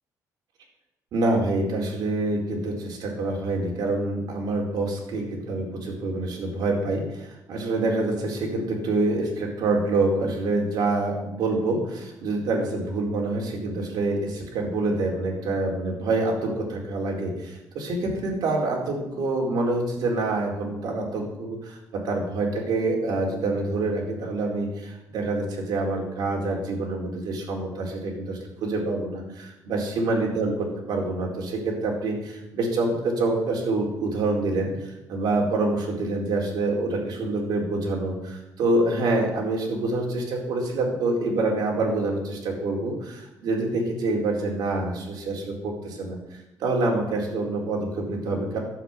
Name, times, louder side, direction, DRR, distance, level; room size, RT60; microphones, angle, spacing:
voice 1, 1.1-48.6, right 2 dB, 75° right, 0 dB, 4.3 m, -26 dB
12.0 x 8.0 x 9.5 m, 0.94 s
cardioid pair, 150°, 7 cm